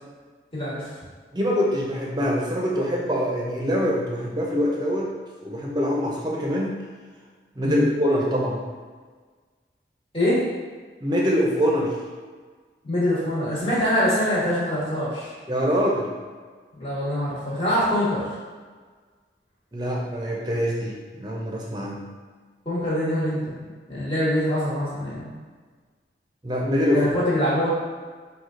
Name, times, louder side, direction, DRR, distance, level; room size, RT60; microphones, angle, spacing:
voice 1, 0.5-0.9 7.6-7.9 10.1-10.4 12.8-15.3 16.8-18.2 22.6-25.3 26.9-27.7, left 1 dB, 30° left, -8 dB, 1.4 m, -24 dB
voice 2, 1.3-5.1 5.4-6.8 7.5-8.6 11.0-12.0 15.5-16.2 19.7-22.0 26.4-27.1, equal, 25° right, -2 dB, 0.6 m, -24 dB
4.8 x 2.4 x 3.8 m, 1.5 s
head